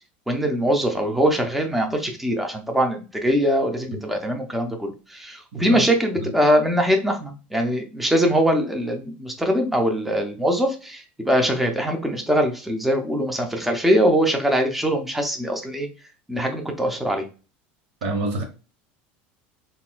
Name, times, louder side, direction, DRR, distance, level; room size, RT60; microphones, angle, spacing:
voice 1, 0.3-15.9 16.3-17.3, equal, 5° right, 0.6 m, -22 dB
voice 2, 5.5-5.8 6.2-6.3 18.0-18.4, right 2 dB, 80° right, 1.1 m, -27 dB
3.9 x 2.5 x 2.2 m
supercardioid pair, 120°, 5 cm